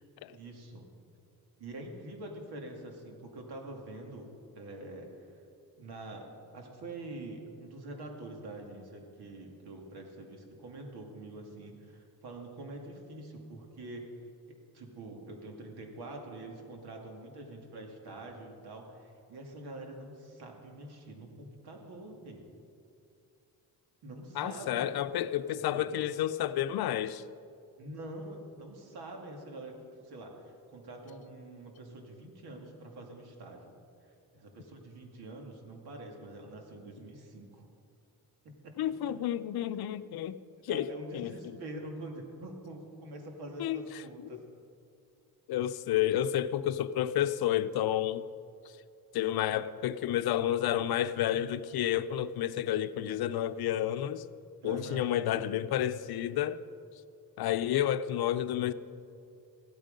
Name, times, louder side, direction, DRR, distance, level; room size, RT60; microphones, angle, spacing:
voice 1, 0.3-0.9 1.6-4.3 4.5-5.4 5.8-14.1 14.5-22.4 24.0-24.9 25.7-25.9 27.8-29.7 30.0-33.6 34.0-37.7 38.4-38.8 40.7-44.4 54.6-55.1, right 2 dB, 90° right, 2 dB, 2.3 m, -45 dB
voice 2, 24.4-27.2 38.8-40.4 40.6-40.9 41.1-41.6 43.6-43.9 45.5-48.2 49.1-54.3 54.6-56.6 57.4-58.7, left 11 dB, 75° left, 12 dB, 0.6 m, -30 dB
15.0 x 13.0 x 5.3 m, 2.5 s
cardioid pair, 110°, 37 cm